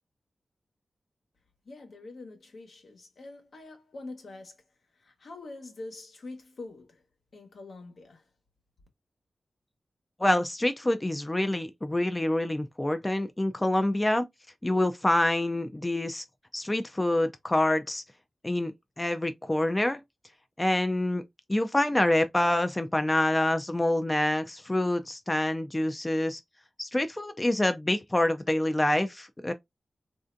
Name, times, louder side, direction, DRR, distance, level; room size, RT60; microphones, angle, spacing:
voice 1, 1.6-4.6 4.9-7.0 7.3-8.3, left 2 dB, 75° left, 1.0 m, -45 dB
voice 2, 10.2-14.2 14.6-16.2 16.5-18.0 18.4-18.7 19.0-20.0 20.6-21.2 21.5-26.4 26.8-29.5, left 1 dB, 15° left, 0.4 m, -26 dB
3.2 x 2.5 x 2.5 m
wide cardioid pair, 85°, 0 cm